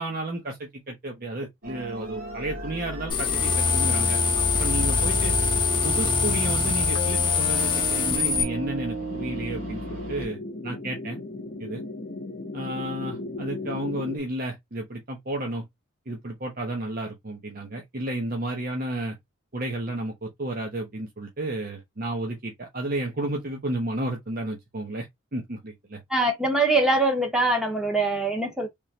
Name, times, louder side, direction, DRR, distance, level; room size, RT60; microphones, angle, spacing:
voice 1, 0.0-5.3 5.8-10.4 10.6-11.2 11.6-11.8 12.5-15.7 16.1-19.2 19.5-25.1 25.3-26.0, right 1 dB, 45° right, 0.9 m, -32 dB
sound 1, 1.6-10.3, equal, 75° right, 2.1 m, -35 dB
sound 2, 3.1-8.4, left 4 dB, 25° left, 0.9 m, -23 dB
sound 3, 9.1-14.2, left 2 dB, 50° left, 0.8 m, -36 dB
voice 2, 26.1-28.7, right 2 dB, 5° right, 0.9 m, -23 dB
3.6 x 3.1 x 2.7 m
head